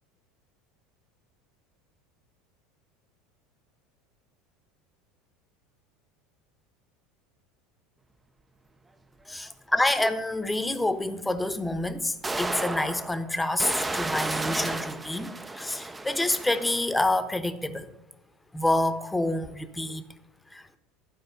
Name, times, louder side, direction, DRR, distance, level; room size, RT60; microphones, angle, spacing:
voice 1, 9.3-17.9 18.5-20.0 20.5-20.6, left 2 dB, 10° left, 1.0 m, -27 dB
sound 1, 9.5-9.6 11.4-11.5 12.2-16.9, right 2 dB, 15° right, 0.7 m, -33 dB
12.5 x 4.7 x 8.0 m
hypercardioid pair, 80°, 0 cm